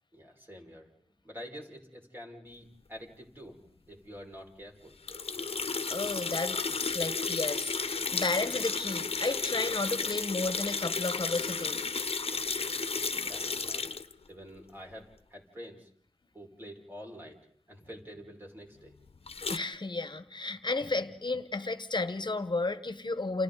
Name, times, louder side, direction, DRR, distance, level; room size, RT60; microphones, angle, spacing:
voice 1, 0.1-5.0 13.0-13.8 14.3-15.9 16.3-17.4 17.7-18.9, equal, 20° right, 5.6 m, -47 dB
sound 1, 5.1-14.1 19.3-19.6, left 4 dB, 75° left, 1.0 m, -33 dB
voice 2, 5.9-11.8 19.5-23.4, left 3 dB, 50° left, 1.3 m, -33 dB
29.5 x 29.0 x 4.1 m
wide cardioid pair, 60°, 10 cm